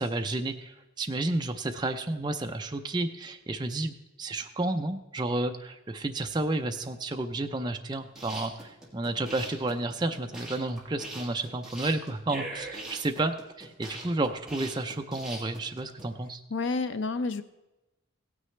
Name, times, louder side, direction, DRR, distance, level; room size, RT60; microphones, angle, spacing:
voice 1, 0.0-16.4, right 2 dB, 20° right, 5 dB, 0.5 m, -31 dB
sound 1, 8.0-16.0, right 2 dB, 5° right, 1.7 m, -41 dB
voice 2, 16.5-17.4, left 3 dB, 60° left, 11 dB, 0.6 m, -29 dB
16.5 x 9.5 x 3.2 m, 1.0 s
head